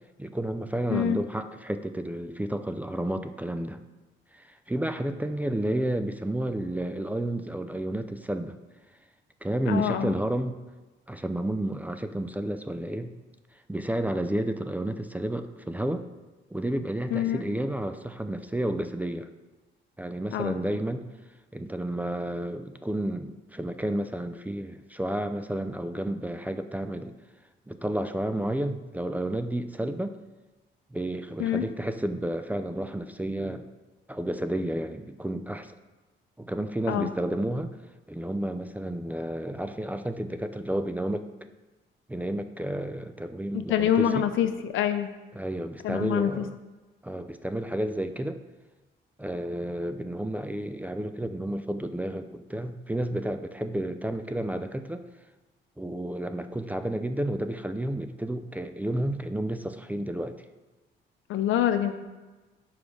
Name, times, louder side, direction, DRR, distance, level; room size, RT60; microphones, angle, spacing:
voice 1, 0.2-3.8 4.3-8.6 9.4-10.6 11.1-13.1 13.7-16.0 16.5-19.3 20.0-21.0 21.5-27.1 27.7-30.2 30.9-33.6 34.1-35.7 36.4-37.7 38.1-41.3 42.1-44.3 45.3-46.6 47.0-48.4 49.2-55.1 55.8-60.4, right 1 dB, 10° right, 9 dB, 0.4 m, -31 dB
voice 2, 9.7-10.1 17.1-17.4 20.3-20.6 31.4-31.7 36.9-37.1 43.5-45.1 45.8-46.5 61.3-62.0, left 10 dB, 80° left, 9 dB, 0.6 m, -26 dB
5.0 x 4.8 x 5.3 m, 1.2 s
cardioid pair, 90°, 20 cm